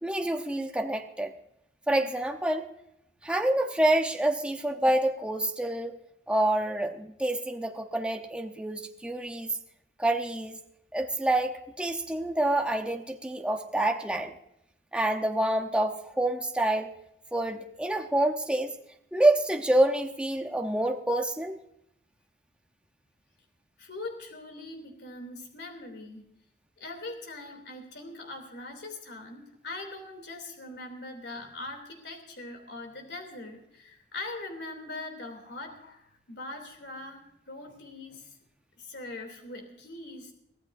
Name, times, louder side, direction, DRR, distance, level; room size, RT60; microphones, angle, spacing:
voice 1, 0.0-1.3 1.9-2.7 3.2-6.0 6.3-9.6 10.0-10.6 10.9-14.3 14.9-16.9 17.3-18.7 19.1-21.6, right 1 dB, 5° right, 4 dB, 0.8 m, -27 dB
voice 2, 23.8-26.2 26.8-38.3 38.8-40.3, left 2 dB, 75° left, 4 dB, 2.9 m, -41 dB
23.5 x 15.0 x 2.6 m, 0.78 s
head